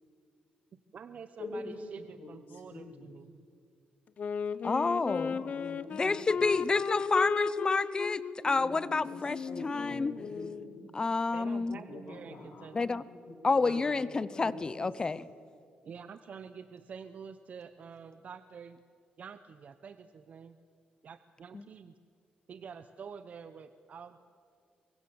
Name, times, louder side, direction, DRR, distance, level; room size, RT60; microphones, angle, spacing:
voice 1, 0.7-3.4 11.3-12.8 13.6-13.9 15.8-18.8 19.2-20.6 21.0-21.9 22.5-24.2, right 6 dB, 50° right, 11 dB, 0.8 m, -47 dB
voice 2, 1.4-1.9 2.2-3.1 5.1-6.5 8.5-10.9 11.6-14.9, left 2 dB, 75° left, 2 dB, 6.2 m, -45 dB
Wind instrument woodwind instrument, 4.2-10.8, left 6 dB, 50° left, 0.9 m, -35 dB
voice 3, 4.6-5.4 5.9-10.1 10.9-11.8 12.7-13.0 13.4-15.3 21.5-21.6, left 3 dB, 25° left, 18 dB, 0.6 m, -29 dB
24.0 x 22.5 x 7.9 m, 2.3 s
cardioid pair, 120°, 3 cm